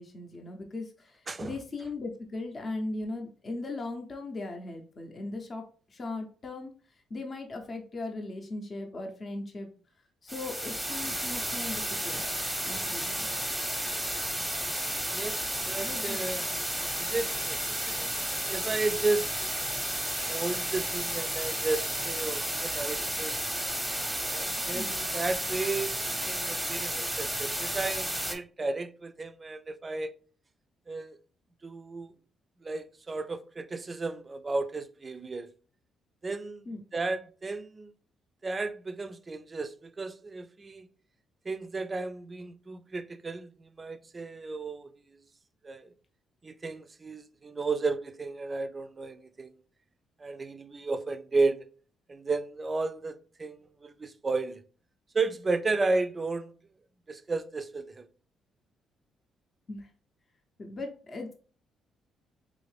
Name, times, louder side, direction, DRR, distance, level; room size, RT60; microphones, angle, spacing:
voice 1, 0.0-9.7 10.2-12.2 12.6-13.3 15.8-16.6 24.7-25.0 36.7-36.8 59.7-59.9 60.6-61.3, left 2 dB, 40° left, 0.6 m, -38 dB
voice 2, 1.3-1.6 15.1-16.5 17.0-18.2 18.5-19.5 20.2-23.5 24.3-30.2 30.9-31.2 31.6-32.1 32.6-35.5 36.2-36.6 36.9-37.9 38.4-40.9 41.5-45.2 45.6-45.9 46.4-49.5 50.2-51.7 52.1-54.6 55.1-56.5 57.1-58.1, right 3 dB, 30° right, 0.3 m, -33 dB
sound 1, 10.3-28.3, right 1 dB, 5° right, 0.8 m, -32 dB
3.5 x 2.5 x 3.2 m
cardioid pair, 90°, 0 cm